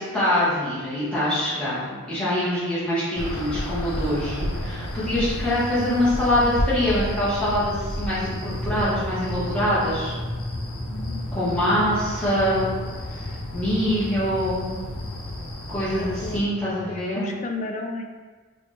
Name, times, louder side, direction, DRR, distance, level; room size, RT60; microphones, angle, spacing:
voice 1, 0.0-10.1 11.3-12.7 13.5-14.8 15.7-17.3, left 1 dB, 5° left, -11 dB, 1.4 m, -24 dB
sound 1, 3.2-16.4, left 1 dB, 85° left, 0.7 m, -32 dB
sound 2, 4.2-17.0, left 1 dB, 90° right, 1.3 m, -37 dB
voice 2, 10.9-11.9 12.3-12.6 16.0-16.4 16.9-18.0, left 3 dB, 35° left, 3 dB, 0.4 m, -34 dB
4.8 x 2.6 x 3.2 m, 1.4 s
head